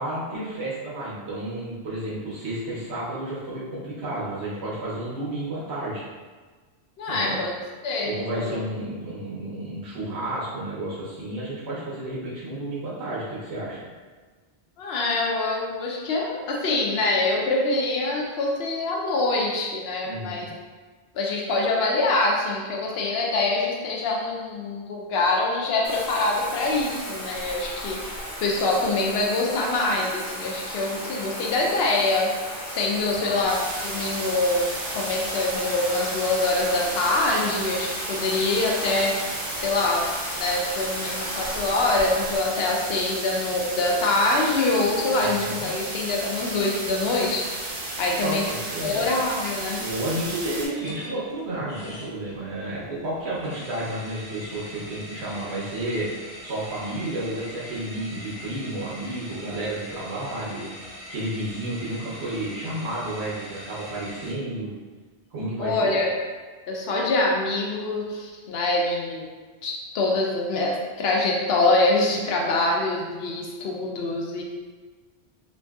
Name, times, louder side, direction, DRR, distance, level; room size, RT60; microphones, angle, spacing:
voice 1, 0.0-6.0 7.1-7.4 8.0-13.9 20.0-20.5 33.1-33.4 45.2-45.7 48.2-49.1 49.8-56.1 56.4-60.7 61.1-64.7 65.3-65.9, right 1 dB, 90° right, -7 dB, 1.0 m, -31 dB
voice 2, 7.0-7.5 7.8-8.5 14.8-20.5 21.1-32.3 32.7-39.3 39.6-40.1 40.4-48.5 48.8-49.8 65.6-66.1 66.7-69.2 69.6-74.4, left 2 dB, 70° left, -1 dB, 0.8 m, -25 dB
Bathtub (filling or washing), 25.8-42.4, equal, 25° left, 0.4 m, -35 dB
sound 1, 33.5-50.7, right 2 dB, 60° right, 0.8 m, -34 dB
sound 2, 45.7-64.3, equal, 10° right, 0.7 m, -43 dB
3.0 x 2.6 x 2.3 m, 1.4 s
omnidirectional pair, 1.1 m